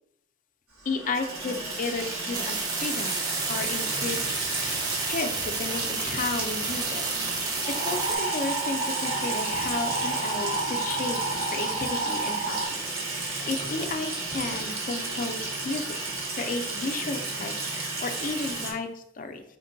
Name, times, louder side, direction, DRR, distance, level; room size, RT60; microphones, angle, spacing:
Water tap faucet / Sink (filling or washing), 0.8-18.7, right 3 dB, 85° right, 1.3 m, -32 dB
voice 1, 0.9-2.6 2.8-3.2 3.5-4.2 4.9-7.0 7.3-11.2 11.5-12.8 13.1-15.9 16.3-19.4, left 3 dB, 40° left, 7 dB, 0.4 m, -33 dB
sound 1, 2.3-8.1, right 4 dB, 20° right, 0.4 m, -32 dB
sound 2, 7.6-12.7, right 3 dB, 55° right, 0.7 m, -31 dB
5.1 x 2.2 x 3.9 m, 0.74 s
head